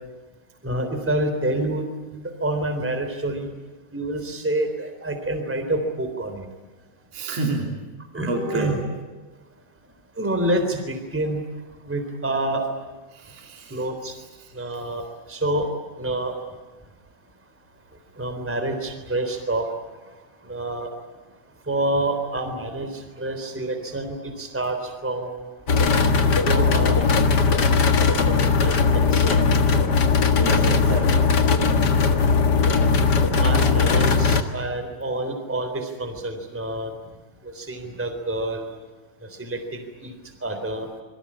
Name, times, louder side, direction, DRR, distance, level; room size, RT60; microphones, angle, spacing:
voice 1, 0.6-3.5 3.9-6.5 8.1-8.8 10.2-11.4 11.9-12.6 13.7-14.1 14.5-15.0 15.3-15.7 16.0-16.3 18.2-19.7 20.5-20.9 21.7-25.3 26.2-27.5 27.8-29.4 30.6-30.8 33.3-36.9 37.4-38.7 39.2-40.1 40.4-40.9, right 1 dB, 5° right, 7 dB, 3.3 m, -28 dB
voice 2, 7.1-7.7 8.3-8.8 13.1-13.8 14.4-14.5 30.4-31.3, right 2 dB, 55° right, 1 dB, 4.2 m, -29 dB
sound 1, 25.7-34.4, left 5 dB, 40° left, 1.8 m, -19 dB
27.0 x 23.5 x 8.7 m, 1.2 s
omnidirectional pair, 3.4 m